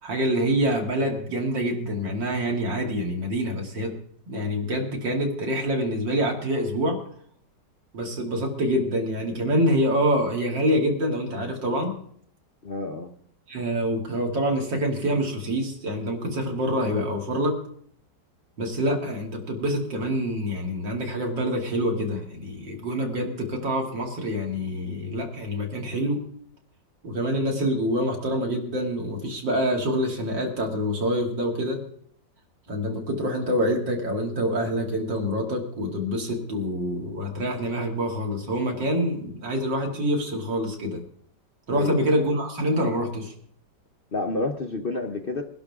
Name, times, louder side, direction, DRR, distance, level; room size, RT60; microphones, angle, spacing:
voice 1, 0.0-3.9 4.3-7.0 7.9-12.0 13.5-17.5 18.6-26.2 27.0-31.8 32.7-41.0 41.7-43.3, equal, 85° right, 1 dB, 3.3 m, -26 dB
voice 2, 12.6-13.1 41.7-42.2 44.1-45.4, left 2 dB, 40° left, 5 dB, 0.9 m, -29 dB
22.5 x 11.5 x 3.7 m, 0.64 s
omnidirectional pair, 1.9 m